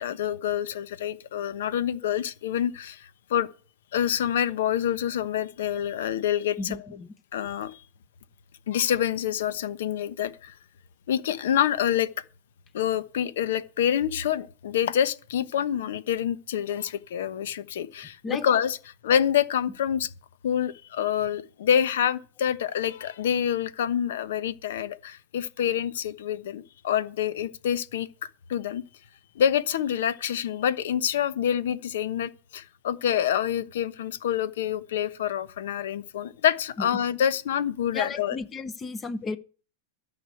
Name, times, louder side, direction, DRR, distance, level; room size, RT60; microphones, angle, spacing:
voice 1, 0.0-3.5 3.9-6.8 7.3-7.8 8.7-10.5 11.1-12.1 12.7-18.8 19.0-20.1 20.4-28.1 28.5-28.8 29.3-38.4, left 9 dB, 70° left, 1.1 m, -27 dB
voice 2, 6.6-7.1 18.2-18.4 36.8-36.9 37.9-39.4, left 3 dB, 10° left, 0.8 m, -33 dB
13.0 x 6.2 x 9.2 m
supercardioid pair, 175°, 0 cm